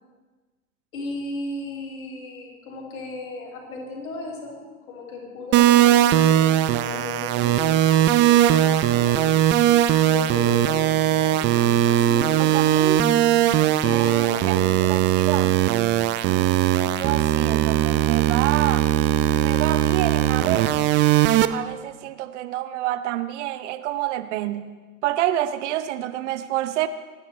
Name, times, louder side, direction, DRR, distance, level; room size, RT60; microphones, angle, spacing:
voice 1, 0.9-4.6 4.9-9.3 10.0-10.8 11.1-12.5 13.8-14.9 16.1-16.3, left 3 dB, 65° left, -2 dB, 5.5 m, -35 dB
sound 1, 5.5-21.5, right 12 dB, 25° right, 0.5 m, -19 dB
voice 2, 12.4-13.1 13.9-14.6 14.9-15.6 16.8-18.9 19.3-21.0 21.5-24.7 25.0-26.9, right 13 dB, 50° right, 12 dB, 0.9 m, -28 dB
26.5 x 11.0 x 3.2 m, 1.3 s
figure-of-eight pair, 95°, 45 cm